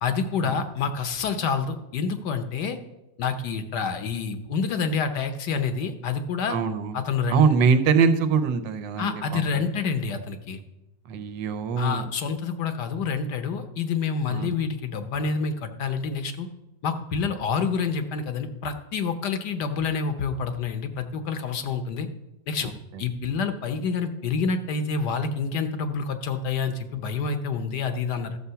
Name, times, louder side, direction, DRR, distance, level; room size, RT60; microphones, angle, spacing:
voice 1, 0.0-2.8 3.2-6.6 6.9-7.4 9.0-10.6 11.8-16.5 16.8-22.1 22.5-22.7 23.0-28.4, left 5 dB, 70° left, 8 dB, 1.5 m, -28 dB
voice 2, 6.5-6.9 7.3-9.7 11.1-12.1 14.3-14.5 22.6-23.0, right 6 dB, 85° right, 10 dB, 1.5 m, -23 dB
12.5 x 7.1 x 5.7 m, 0.93 s
omnidirectional pair, 2.0 m